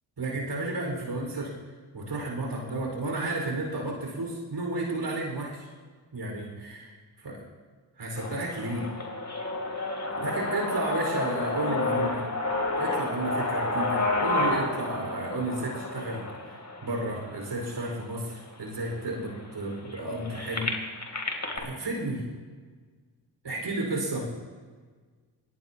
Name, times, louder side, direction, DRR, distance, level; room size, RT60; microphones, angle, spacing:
voice 1, 0.2-1.5 1.9-5.7 6.1-7.4 8.0-8.9 10.2-12.3 12.8-20.7 21.5-22.2 23.4-24.3, right 2 dB, 60° right, 0 dB, 4.9 m, -32 dB
sound 1, 8.2-18.1 18.8-18.9 19.1-21.6, left 2 dB, 35° left, 3.1 m, -30 dB
22.5 x 18.0 x 2.9 m, 1.5 s
supercardioid pair, 45°, 48 cm